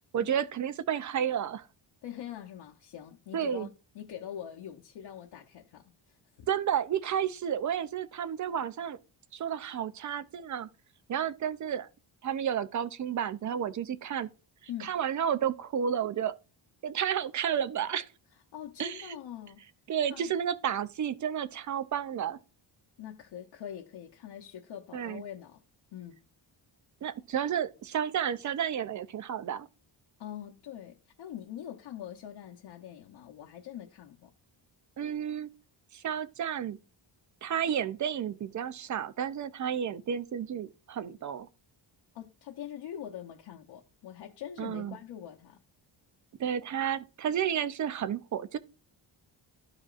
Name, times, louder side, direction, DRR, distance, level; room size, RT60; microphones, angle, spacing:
voice 1, 0.1-1.7 3.3-3.7 6.5-9.0 9.3-10.7 11.1-11.9 12.2-14.3 14.8-16.3 16.8-18.1 18.8-19.2 19.9-22.4 24.9-25.2 27.0-29.7 35.0-35.5 35.9-36.8 37.4-41.5 44.6-45.0 46.4-48.6, right 9 dB, 40° right, 0.5 m, -31 dB
voice 2, 2.0-6.5 14.7-14.9 18.5-19.6 20.1-20.3 23.0-25.6 25.9-26.2 30.2-34.3 42.1-45.6, left 10 dB, 65° left, 1.0 m, -43 dB
13.0 x 5.0 x 2.5 m
wide cardioid pair, 155°, 47 cm